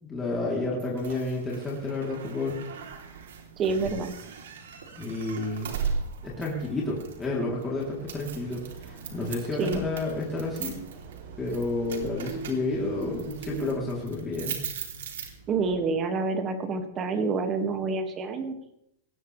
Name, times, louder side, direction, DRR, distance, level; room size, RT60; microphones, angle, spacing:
voice 1, 0.0-2.6 5.0-5.7 6.2-10.7 11.4-14.6, left 2 dB, 15° left, -4 dB, 3.4 m, -30 dB
sound 1, 0.8-15.7, right 6 dB, 85° right, 3.4 m, -39 dB
voice 2, 3.6-4.1 9.6-9.8 15.5-18.6, right 4 dB, 25° right, 6 dB, 2.1 m, -28 dB
sound 2, 8.1-13.8, right 5 dB, 55° right, 3.5 m, -44 dB
19.0 x 16.5 x 3.4 m, 0.75 s
supercardioid pair, 150°, 0 cm